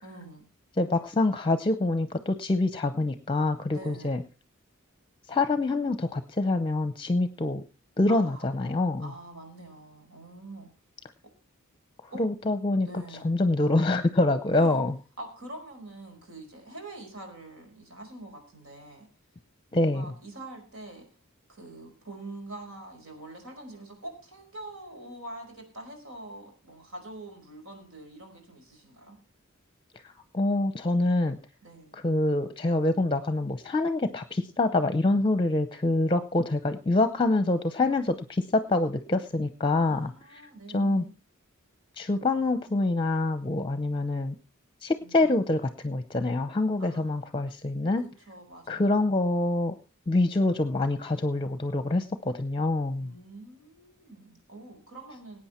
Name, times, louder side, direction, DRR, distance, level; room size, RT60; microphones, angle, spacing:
voice 1, 0.0-0.4 3.7-4.1 8.1-8.5 9.0-10.7 12.1-12.2 12.8-13.4 14.5-14.8 15.2-19.1 19.7-21.0 21.5-29.2 31.6-32.0 39.8-41.1 45.0-45.5 46.8-47.3 48.3-49.1 53.0-55.4, right 2 dB, 80° right, 4 dB, 5.0 m, -45 dB
voice 2, 0.8-4.2 5.3-7.6 8.0-9.1 12.2-12.9 13.2-14.9 19.7-20.1 30.3-31.4 31.9-40.1 40.7-41.0 42.0-44.4 44.8-48.0 48.7-49.7 50.1-53.1, left 2 dB, 25° left, 11 dB, 0.7 m, -25 dB
19.0 x 8.7 x 4.4 m, 0.33 s
head